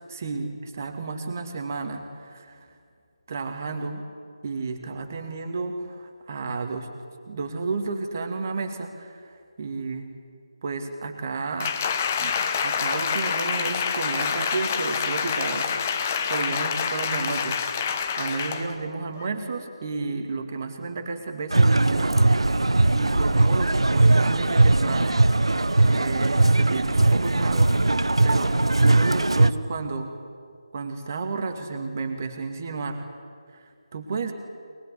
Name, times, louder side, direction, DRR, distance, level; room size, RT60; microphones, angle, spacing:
voice 1, 0.1-2.7 3.3-4.0 4.4-6.9 7.3-10.1 10.6-11.7 12.2-12.4 12.6-15.7 16.0-25.2 25.6-27.9 28.2-28.5 28.8-30.1 30.7-33.0 33.5-33.7 33.9-34.3, right 4 dB, 30° right, 5 dB, 2.4 m, -32 dB
Applause, 11.6-18.7 19.2-19.3, left 6 dB, 20° left, 1.1 m, -27 dB
sound 1, 21.5-29.5, right 2 dB, 65° right, 0.9 m, -19 dB
22.5 x 20.5 x 9.7 m, 2.2 s
figure-of-eight pair, 155°, 3 cm